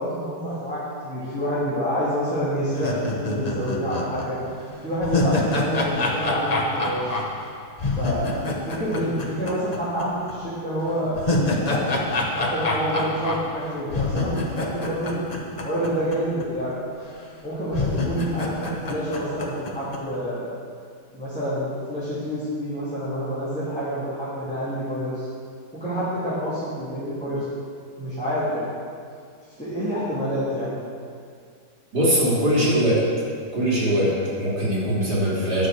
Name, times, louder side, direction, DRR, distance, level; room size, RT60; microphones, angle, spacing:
voice 1, 0.0-4.4 4.8-7.2 8.0-11.2 11.6-12.0 12.3-15.3 15.6-16.7 17.4-20.5 21.1-25.2 25.7-27.4 28.0-28.7 29.6-30.7, equal, 5° left, -14 dB, 2.8 m, -28 dB
sound 1, 2.7-10.0 10.3-10.4 10.9-16.2 16.4-16.5 17.2-17.3 17.7-20.0, left 2 dB, 30° left, 0.9 m, -26 dB
voice 2, 31.9-33.0 33.5-35.7, equal, 65° right, -8 dB, 3.6 m, -21 dB
10.0 x 6.5 x 6.5 m, 2.3 s
omnidirectional pair, 1.9 m